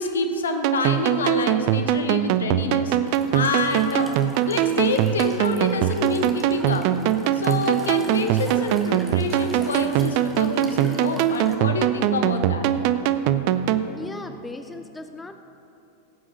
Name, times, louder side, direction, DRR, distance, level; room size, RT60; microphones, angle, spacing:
voice 1, 0.0-4.1 4.5-6.9 7.3-12.7, left 3 dB, 65° left, 6 dB, 1.0 m, -27 dB
sound 1, 0.6-13.9, right 11 dB, 45° right, 0.4 m, -22 dB
Walk footsteps / Chirp tweet / Stream, 3.1-11.6, right 1 dB, 10° right, 1.5 m, -42 dB
voice 2, 13.9-15.4, left 2 dB, 10° left, 8 dB, 0.5 m, -37 dB
17.5 x 8.5 x 4.0 m, 2.8 s
figure-of-eight pair, 90°, 0 cm